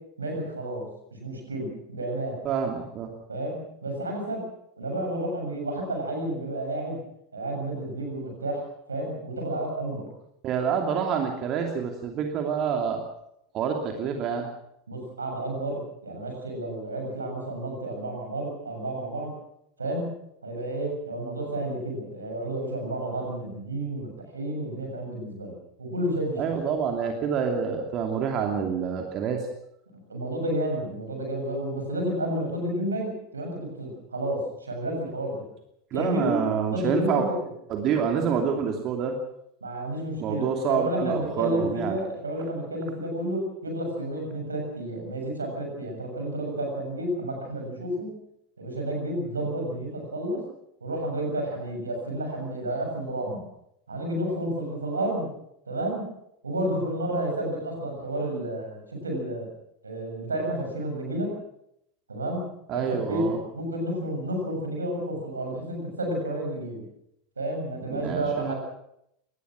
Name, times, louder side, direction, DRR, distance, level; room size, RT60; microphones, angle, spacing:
voice 1, 0.2-0.9 1.2-2.4 3.3-4.4 4.8-7.0 7.3-8.6 8.9-10.1 14.9-19.3 19.8-20.1 20.4-25.5 25.8-26.6 29.9-35.4 35.9-36.4 36.7-37.3 39.6-48.1 48.6-50.4 50.8-53.4 53.9-55.3 55.7-56.0 56.4-59.5 59.8-61.3 62.1-62.4 62.7-66.8 67.4-68.6, right 1 dB, 80° right, 3 dB, 7.1 m, -31 dB
voice 2, 2.4-3.1 10.4-13.0 13.5-14.5 26.4-29.5 35.9-37.3 37.7-39.1 40.2-42.0 62.7-63.4 67.9-68.5, right 7 dB, 40° right, 3 dB, 2.8 m, -27 dB
23.0 x 19.0 x 6.3 m, 0.76 s
figure-of-eight pair, 80°, 0 cm